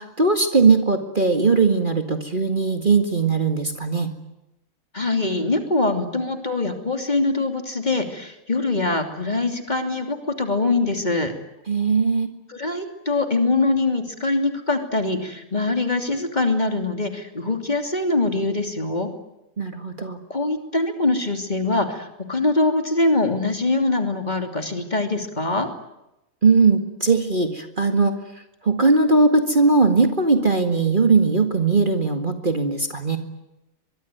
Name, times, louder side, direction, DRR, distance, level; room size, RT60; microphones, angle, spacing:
voice 1, 0.0-4.1 11.7-12.3 19.6-20.2 26.4-28.2 28.6-33.2, right 4 dB, 30° right, 6 dB, 2.1 m, -19 dB
voice 2, 4.9-11.3 12.5-19.1 20.3-25.7, left 2 dB, 25° left, 6 dB, 3.1 m, -23 dB
24.0 x 23.0 x 9.3 m, 0.92 s
omnidirectional pair, 1.6 m